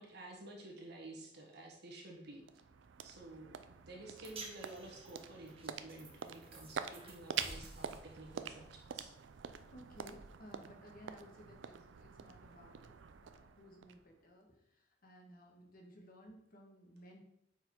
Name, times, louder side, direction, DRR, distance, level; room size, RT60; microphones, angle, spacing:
voice 1, 0.0-2.4 3.0-3.6 3.9-9.1, right 2 dB, 60° right, 1 dB, 1.5 m, -52 dB
sound 1, 2.2-14.4, right 7 dB, 90° right, 0.4 m, -47 dB
sound 2, 4.2-10.6, right 2 dB, 30° right, 1.2 m, -55 dB
voice 2, 9.7-12.8 13.2-17.2, equal, 50° left, 0 dB, 1.4 m, -57 dB
5.6 x 4.5 x 4.5 m, 0.78 s
head